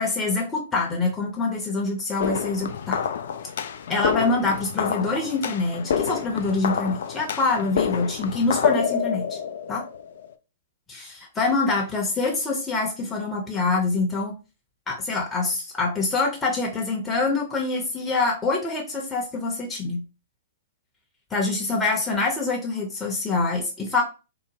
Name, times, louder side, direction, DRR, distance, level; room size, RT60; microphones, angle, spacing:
voice 1, 0.0-3.0 3.9-9.4 9.7-9.8 10.9-14.3 14.9-20.0 21.3-24.0, left 3 dB, 15° left, -2 dB, 0.7 m, -25 dB
sound 1, 2.2-10.3, left 7 dB, 60° left, 0.3 m, -28 dB
2.8 x 2.1 x 2.8 m, 0.32 s
figure-of-eight pair, 115°, 0 cm